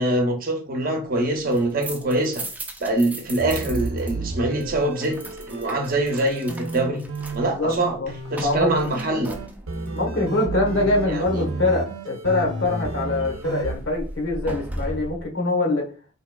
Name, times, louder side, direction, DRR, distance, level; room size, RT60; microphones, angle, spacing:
voice 1, 0.0-2.4 2.8-5.2 5.5-7.0 7.3-8.0 8.3-9.4 11.1-11.5, right 1 dB, 45° right, 0.6 m, -24 dB
sound 1, 1.4-4.1 4.4-10.0 13.0-15.3, right 1 dB, 10° right, 0.3 m, -37 dB
sound 2, 3.4-13.8, right 3 dB, 85° right, 0.6 m, -32 dB
voice 2, 7.4-8.1 8.4-8.7 9.9-15.9, left 2 dB, 75° left, 1.0 m, -24 dB
3.7 x 2.8 x 2.2 m
head